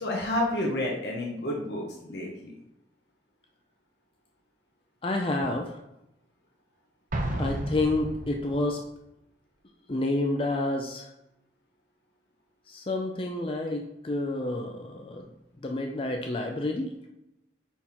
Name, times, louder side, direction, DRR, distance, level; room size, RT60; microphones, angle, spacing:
voice 1, 0.0-2.6, left 1 dB, 70° left, -1 dB, 1.1 m, -30 dB
voice 2, 5.0-5.8 7.4-8.8 9.9-11.1 12.7-15.3 15.6-16.9, left 2 dB, 30° left, 2 dB, 0.5 m, -29 dB
Explosion, 7.1-8.8, right 1 dB, 45° right, 0.8 m, -32 dB
5.5 x 4.4 x 4.3 m, 0.85 s
head